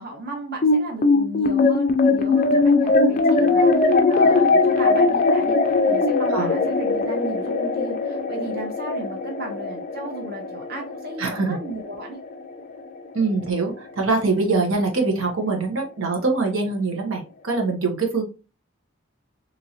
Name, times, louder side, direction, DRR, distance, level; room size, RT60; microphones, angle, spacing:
voice 1, 0.0-5.6 5.9-12.2, right 1 dB, 50° right, 2 dB, 0.8 m, -35 dB
sound 1, 0.6-13.2, left 3 dB, 40° left, 0.3 m, -20 dB
voice 2, 11.2-11.6 13.1-18.2, right 3 dB, 80° right, 2 dB, 0.8 m, -23 dB
3.0 x 2.5 x 2.7 m, 0.32 s
head